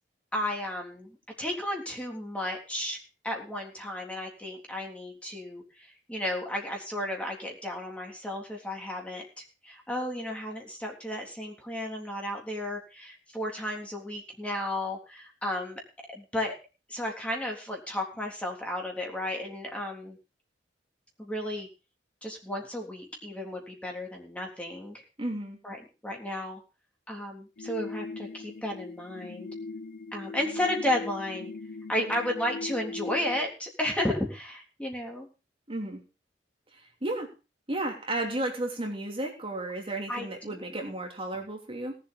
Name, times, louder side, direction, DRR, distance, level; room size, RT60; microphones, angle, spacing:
voice 1, 0.3-3.0 3.2-15.8 16.1-16.5 16.9-20.2 21.2-21.7 22.2-25.0 25.6-26.6 27.1-29.5 30.1-31.5 31.9-35.3 40.1-40.9, left 1 dB, 5° left, 0 dB, 3.5 m, -33 dB
voice 2, 25.2-25.6 35.7-36.0 37.0-37.3 37.7-41.9, right 1 dB, 30° right, 1 dB, 3.1 m, -33 dB
sound 1, 27.6-33.4, left 3 dB, 55° left, 0.9 m, -39 dB
18.5 x 7.8 x 5.3 m, 0.31 s
head